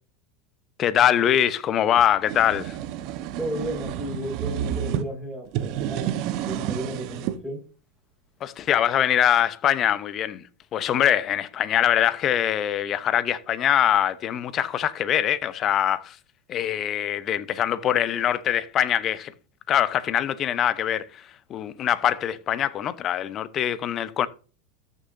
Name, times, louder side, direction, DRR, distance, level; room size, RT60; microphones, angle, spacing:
voice 1, 0.8-2.8 8.4-10.4 10.7-16.2 16.5-19.3 19.7-24.3, left 10 dB, 40° left, 0.9 m, -23 dB
sound 1, 2.0-5.0 5.5-7.4, right 10 dB, 55° right, 1.1 m, -30 dB
voice 2, 3.4-7.6, right 1 dB, ahead, 5.5 m, -33 dB
14.0 x 6.9 x 2.7 m
hypercardioid pair, 90°, 0 cm